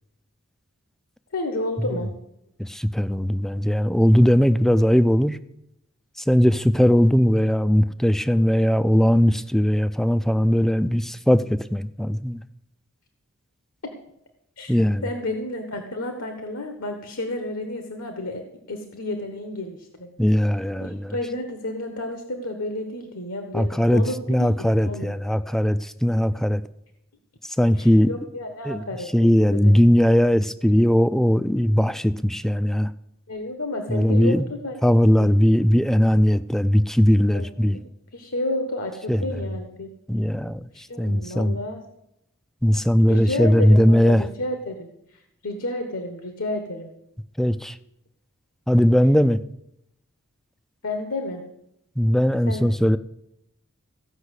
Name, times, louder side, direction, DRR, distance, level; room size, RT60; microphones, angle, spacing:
voice 1, 1.3-2.1 13.8-13.9 14.6-20.1 20.8-25.1 27.7-29.7 33.3-34.8 35.2-35.3 37.3-37.5 38.1-39.9 40.7-41.8 43.1-44.9 45.4-46.9 50.8-51.4 52.5-52.7, left 1 dB, 75° left, 6 dB, 1.3 m, -31 dB
voice 2, 2.6-5.4 6.3-12.4 14.7-15.0 20.2-21.2 23.5-26.6 27.6-28.1 28.6-28.8 29.1-32.9 33.9-34.5 34.8-37.8 39.1-39.4 40.1-41.6 42.6-44.3 47.4-47.8 48.7-49.4 52.0-53.0, equal, ahead, 14 dB, 0.4 m, -19 dB
15.5 x 5.7 x 8.1 m, 0.82 s
head